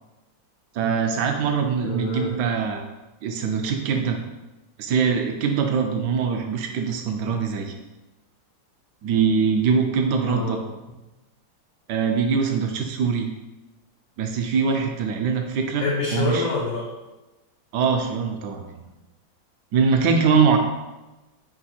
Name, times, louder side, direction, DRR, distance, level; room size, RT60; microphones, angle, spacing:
voice 1, 0.7-2.9 3.2-4.2 4.8-7.7 9.0-10.6 11.9-13.3 14.2-16.4 17.7-18.7 19.7-20.6, right 5 dB, 75° right, 4 dB, 1.0 m, -22 dB
voice 2, 1.8-2.4 10.2-10.6 15.8-16.9, left 3 dB, 75° left, -3 dB, 0.8 m, -26 dB
4.5 x 2.4 x 4.2 m, 1.1 s
omnidirectional pair, 2.2 m